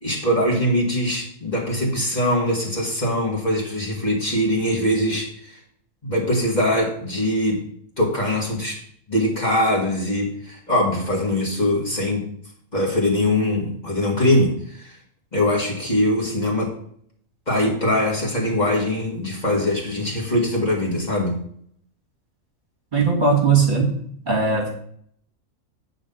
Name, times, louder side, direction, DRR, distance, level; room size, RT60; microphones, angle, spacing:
voice 1, 0.0-5.6 6.0-7.6 8.0-8.8 9.1-12.3 12.7-15.0 15.3-16.7 17.5-21.4, left 1 dB, 30° left, -3 dB, 2.0 m, -22 dB
voice 2, 22.9-23.9 24.3-24.7, right 4 dB, 35° right, -2 dB, 1.9 m, -18 dB
8.6 x 3.9 x 6.9 m, 0.65 s
omnidirectional pair, 1.4 m